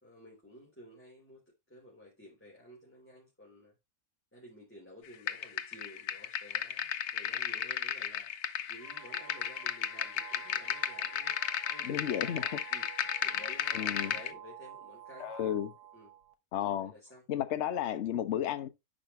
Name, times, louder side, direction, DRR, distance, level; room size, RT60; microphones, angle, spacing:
voice 1, 0.0-1.4 1.7-3.7 4.3-8.3 8.7-11.3 11.7-12.9 13.2-15.3 15.9-16.1 16.8-17.2, equal, 5° left, 3.2 m, -53 dB
sound 1, 5.3-14.3, left 9 dB, 75° left, 1.3 m, -35 dB
sound 2, 8.8-16.3, right 11 dB, 80° right, 1.5 m, -50 dB
voice 2, 11.8-12.6 13.7-14.1 15.2-15.7 16.5-16.9 17.3-18.7, left 10 dB, 55° left, 0.9 m, -33 dB
10.5 x 5.2 x 3.1 m
omnidirectional pair, 1.6 m